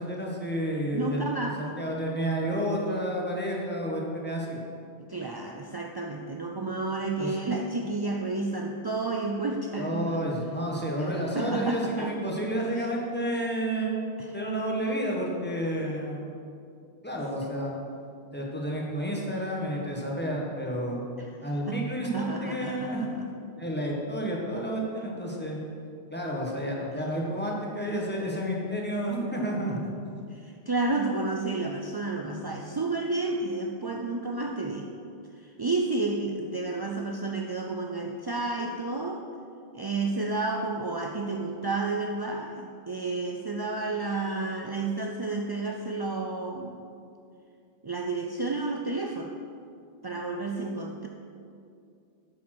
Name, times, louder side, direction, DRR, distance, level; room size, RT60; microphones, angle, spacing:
voice 1, 0.0-1.3 1.8-4.6 7.2-7.4 9.8-14.0 14.3-16.3 17.0-17.7 18.3-21.0 21.4-23.1 23.6-25.6 26.1-29.9 32.2-32.3, equal, 10° left, -3 dB, 1.6 m, -30 dB
voice 2, 0.9-1.8 5.1-10.2 11.0-12.1 12.8-12.9 14.2-14.4 17.4-17.5 21.2-21.3 21.7-23.3 30.3-34.9 35.3-39.2 39.7-46.9 47.8-49.4 50.0-51.1, right 3 dB, 40° right, 1 dB, 0.3 m, -31 dB
8.8 x 7.4 x 6.1 m, 2.5 s
omnidirectional pair, 1.1 m